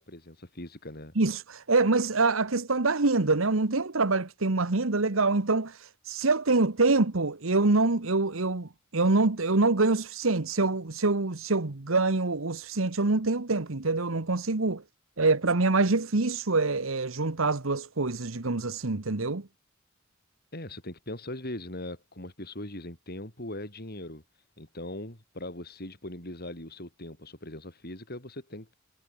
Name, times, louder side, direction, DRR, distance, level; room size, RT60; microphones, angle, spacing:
voice 1, 0.0-1.1 20.5-24.2 24.6-28.7, left 1 dB, 50° left, 7.9 m, -40 dB
voice 2, 1.2-14.8 15.2-19.5, right 3 dB, 75° right, 1.3 m, -25 dB
head